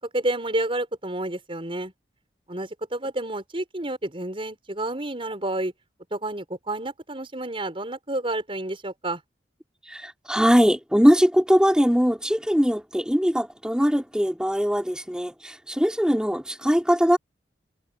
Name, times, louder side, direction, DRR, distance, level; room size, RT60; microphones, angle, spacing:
voice 1, 0.1-1.9 2.5-5.7 6.1-9.2, right 1 dB, 30° right, 5.3 m, -30 dB
voice 2, 9.8-17.2, equal, 5° right, 3.8 m, -21 dB
open air
head